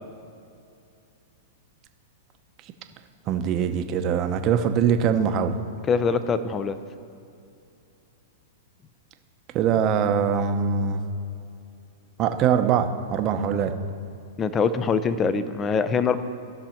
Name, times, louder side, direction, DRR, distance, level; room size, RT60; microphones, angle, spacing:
voice 1, 3.3-5.5 9.5-11.0 12.2-13.7, right 7 dB, 35° right, 7 dB, 0.7 m, -22 dB
voice 2, 5.9-6.8 14.4-16.2, left 5 dB, 20° left, 12 dB, 0.5 m, -23 dB
16.0 x 6.1 x 4.4 m, 2.6 s
hypercardioid pair, 130°, 0 cm